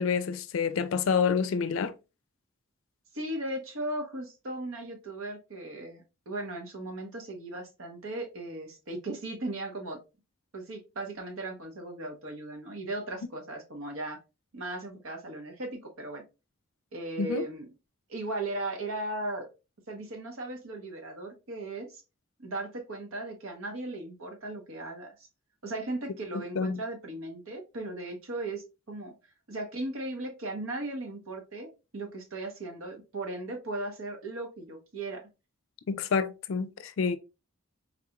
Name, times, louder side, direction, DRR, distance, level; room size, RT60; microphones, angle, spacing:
voice 1, 0.0-1.9 17.2-17.5 26.3-26.8 35.9-37.2, left 5 dB, 70° left, 0.4 m, -28 dB
voice 2, 3.1-10.0 10.5-14.2 14.5-16.2 16.9-17.7 18.1-19.5 19.9-21.9 22.4-25.3 25.6-29.1 29.5-35.2, right 2 dB, 80° right, 1.0 m, -37 dB
3.8 x 2.9 x 2.3 m
head